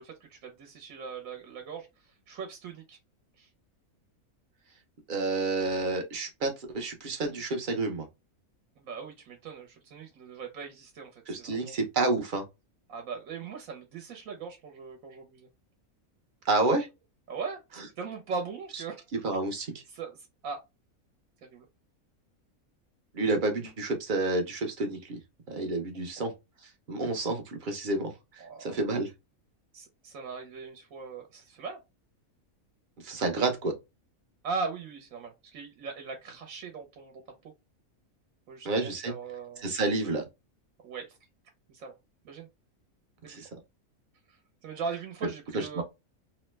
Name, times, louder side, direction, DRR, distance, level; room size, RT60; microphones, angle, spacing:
voice 1, 0.0-3.0 3.4-3.5 8.8-11.7 12.9-15.5 17.3-17.6 18.0-19.0 19.9-20.6 21.5-21.7 26.0-26.1 28.4-28.8 29.7-31.8 34.4-37.1 37.4-37.5 38.5-39.6 40.8-41.2 41.7-41.9 42.2-42.5 43.2-43.4 44.6-45.8, right 5 dB, 70° right, 1.1 m, -39 dB
voice 2, 5.1-8.1 11.3-12.4 16.5-16.9 19.2-19.8 23.1-25.2 25.5-26.3 26.9-29.1 33.0-33.7 38.6-39.1 39.6-40.2 43.3-43.5 45.5-45.8, right 2 dB, 50° right, 0.6 m, -29 dB
2.9 x 2.1 x 3.2 m
omnidirectional pair, 1.5 m